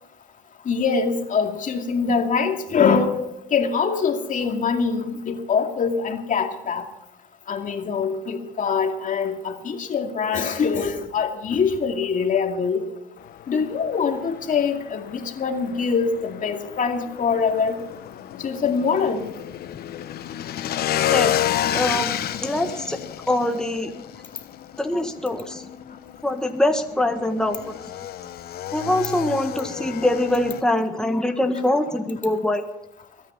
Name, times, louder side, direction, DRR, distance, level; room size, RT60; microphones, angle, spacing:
voice 1, 0.7-3.2 3.5-6.9 7.5-12.8 13.5-17.8 18.4-19.2, left 5 dB, 50° left, 4 dB, 2.4 m, -23 dB
Motorcycle / Engine, 13.2-30.6, left 11 dB, 65° left, 1.0 m, -31 dB
voice 2, 21.7-22.1 22.4-23.0 23.3-23.9 24.8-25.6 26.2-27.6 28.7-32.6, left 1 dB, 5° left, 5 dB, 1.6 m, -23 dB
22.5 x 9.5 x 5.7 m, 0.86 s
supercardioid pair, 70°, 17 cm